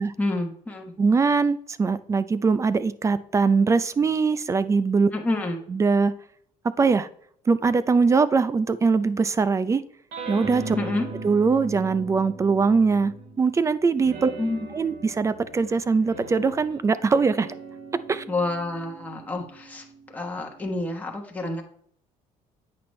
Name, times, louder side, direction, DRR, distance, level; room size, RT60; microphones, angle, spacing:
voice 1, 0.2-0.9 5.1-5.6 10.7-11.1 14.4-14.7 18.3-21.6, left 2 dB, 10° left, 1 dB, 1.2 m, -28 dB
voice 2, 1.0-5.1 5.7-6.2 6.6-7.1 7.5-9.8 10.3-10.8 11.2-14.3 14.7-17.5 18.1-18.2, right 4 dB, 20° right, 15 dB, 0.4 m, -22 dB
sound 1, 10.1-13.5 14.0-20.8, right 3 dB, 85° right, 2.3 m, -39 dB
8.7 x 5.8 x 3.2 m, 0.64 s
cardioid pair, 115°, 14 cm